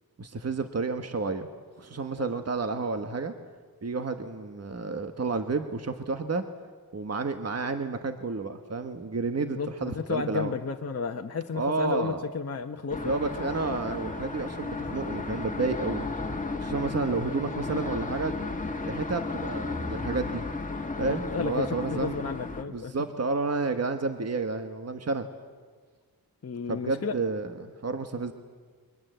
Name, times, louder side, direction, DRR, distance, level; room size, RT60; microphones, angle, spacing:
voice 1, 0.2-1.5 1.8-3.3 3.8-6.4 6.9-10.5 11.5-12.3 13.0-16.1 16.6-18.3 18.9-20.4 21.0-22.2 22.7-25.3 26.7-28.3, right 3 dB, 40° right, 7 dB, 1.4 m, -30 dB
voice 2, 9.4-13.2 20.9-22.9 26.4-27.2, left 5 dB, 40° left, 3 dB, 1.1 m, -33 dB
Traffic heard from apartment interior, 12.9-22.6, left 3 dB, 20° left, 2.0 m, -34 dB
30.0 x 23.5 x 8.0 m, 1.5 s
wide cardioid pair, 140°, 37 cm